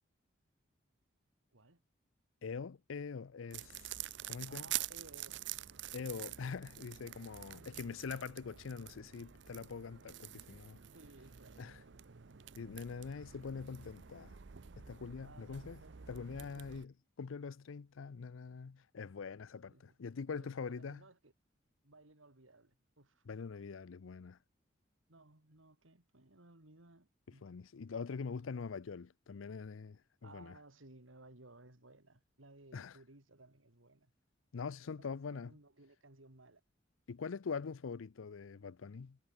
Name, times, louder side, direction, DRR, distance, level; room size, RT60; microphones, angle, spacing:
voice 1, 2.4-3.9 4.3-4.7 5.9-10.8 11.6-11.8 12.6-14.4 14.8-15.8 16.1-21.0 23.3-24.4 27.4-30.6 32.7-33.0 34.5-35.5 37.1-39.2, left 5 dB, 85° left, 0.5 m, -44 dB
sound 1, 3.5-16.9, right 12 dB, 65° right, 0.7 m, -47 dB
voice 2, 4.5-5.4 6.1-6.4 10.9-12.3 15.2-16.9 19.7-20.0 20.4-21.3 21.8-23.3 25.1-27.5 30.2-34.1 35.0-36.6, right 2 dB, 85° right, 3.0 m, -60 dB
head